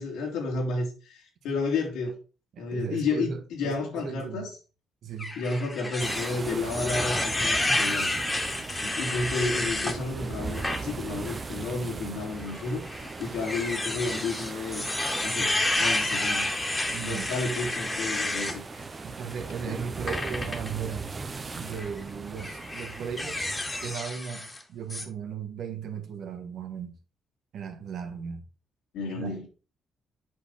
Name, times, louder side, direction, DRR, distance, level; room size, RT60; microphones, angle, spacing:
voice 1, 0.0-2.2 2.6-4.5 5.4-8.2 8.8-14.8 15.2-16.5 16.8-18.8 19.7-19.8 28.9-29.5, left 3 dB, 90° left, 2.9 m, -31 dB
voice 2, 2.5-4.5 5.0-5.3 16.9-17.3 18.8-21.1 21.5-23.4 23.8-26.9 27.5-28.4 29.1-29.3, right 7 dB, 70° right, 1.6 m, -37 dB
sound 1, 5.2-10.0 10.5-10.8 11.3-11.4 12.4-18.6 20.1-20.7 21.7-21.9 22.4-24.6 24.9-25.0, left 1 dB, 15° left, 1.9 m, -30 dB
sound 2, 6.0-24.0, right 4 dB, 30° right, 0.9 m, -38 dB
8.1 x 5.1 x 4.3 m
cardioid pair, 90°, 0 cm